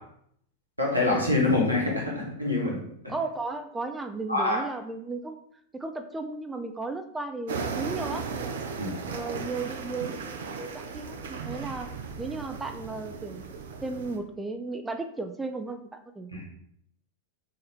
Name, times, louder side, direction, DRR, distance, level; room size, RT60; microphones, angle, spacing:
voice 1, 0.8-2.8 4.3-4.6 8.8-9.0 16.3-16.5, left 2 dB, 90° right, -2 dB, 1.3 m, -25 dB
voice 2, 3.1-5.4 5.7-8.5 9.1-11.9 12.2-13.5 13.8-16.3, right 3 dB, 10° right, 7 dB, 0.3 m, -35 dB
sound 1, 7.5-14.2, right 5 dB, 60° right, 0.6 m, -36 dB
5.5 x 2.7 x 3.4 m, 0.70 s
figure-of-eight pair, 90°, 0 cm